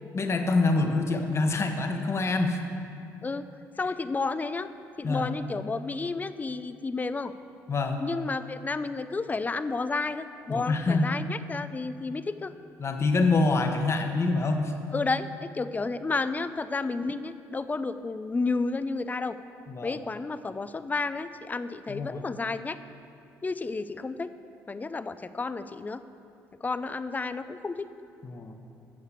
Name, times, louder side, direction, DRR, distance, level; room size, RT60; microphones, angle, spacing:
voice 1, 0.1-2.6 5.0-5.3 7.7-8.0 10.5-11.1 12.8-14.7 19.7-20.0 21.9-22.2 28.2-28.6, left 3 dB, 40° left, 5 dB, 1.2 m, -26 dB
voice 2, 3.8-4.7 5.0-7.3 8.0-12.5 14.9-19.4 19.8-22.8 23.4-24.3 24.7-26.0 26.6-27.9, left 3 dB, 25° left, 12 dB, 0.5 m, -31 dB
8.6 x 6.6 x 8.0 m, 2.5 s
supercardioid pair, 65°, 7 cm